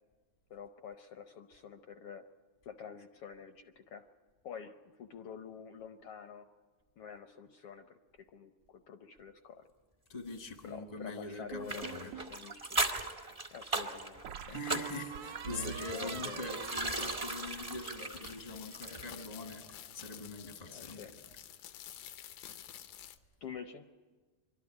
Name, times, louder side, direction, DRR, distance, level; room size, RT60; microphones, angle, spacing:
voice 1, 0.5-2.3 2.6-4.1 4.4-6.5 7.0-9.6 10.6-12.9 13.5-14.6 15.5-16.6 20.7-21.1 23.4-23.8, left 7 dB, 70° left, 1.3 m, -48 dB
voice 2, 10.1-12.1 14.4-21.2 21.6-22.4, left 3 dB, 35° left, 0.6 m, -44 dB
sound 1, 11.5-12.4 14.2-17.9, right 10 dB, 70° right, 1.4 m, -45 dB
sound 2, 11.7-19.3 19.5-19.6, right 2 dB, 30° right, 0.6 m, -38 dB
sound 3, 17.5-23.2, left 11 dB, 90° left, 2.3 m, -50 dB
24.0 x 12.5 x 9.7 m
omnidirectional pair, 3.3 m